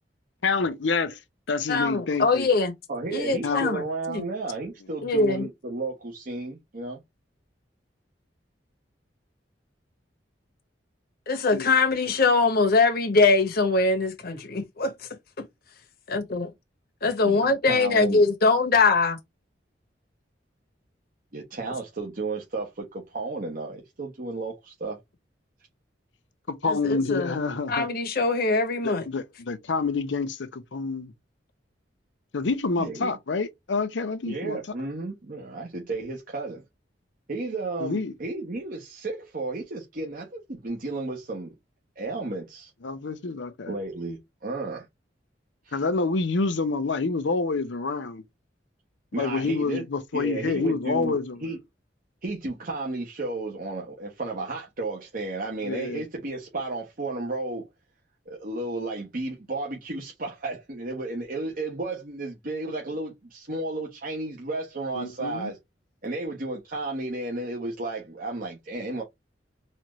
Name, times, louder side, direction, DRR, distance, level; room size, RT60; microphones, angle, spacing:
voice 1, 0.4-1.2 1.5-2.5 3.4-3.7 11.5-11.7 26.5-27.9 28.8-31.1 32.3-34.6 37.8-38.1 42.8-43.7 45.7-48.2 49.2-51.4 55.6-56.0 65.0-65.5, left 4 dB, 90° left, 0.7 m, -27 dB
voice 2, 1.7-2.7 3.1-4.2 5.0-5.5 11.3-14.9 15.4-15.5 16.1-16.5 17.0-19.2 26.7-27.4 27.7-29.1, left 3 dB, 55° left, 1.1 m, -22 dB
voice 3, 2.9-7.0 17.2-18.2 21.3-25.0 32.8-33.1 34.2-36.6 37.3-41.5 42.0-42.7 43.7-44.8 45.6-45.8 49.1-49.8 50.1-51.6 52.2-57.7 58.3-65.6 66.0-69.0, right 2 dB, 50° right, 1.1 m, -33 dB
4.2 x 2.5 x 3.0 m
head